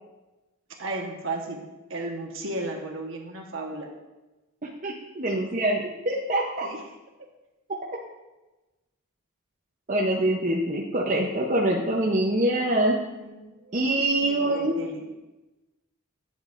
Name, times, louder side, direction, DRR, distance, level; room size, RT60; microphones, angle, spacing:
voice 1, 0.8-1.6 1.9-3.9 6.6-6.8 13.1-15.0, right 2 dB, 65° right, 1 dB, 1.2 m, -35 dB
voice 2, 4.8-6.7 9.9-13.0 13.7-14.8, right 1 dB, 35° right, -3 dB, 0.7 m, -24 dB
10.0 x 7.4 x 2.5 m, 1.1 s
head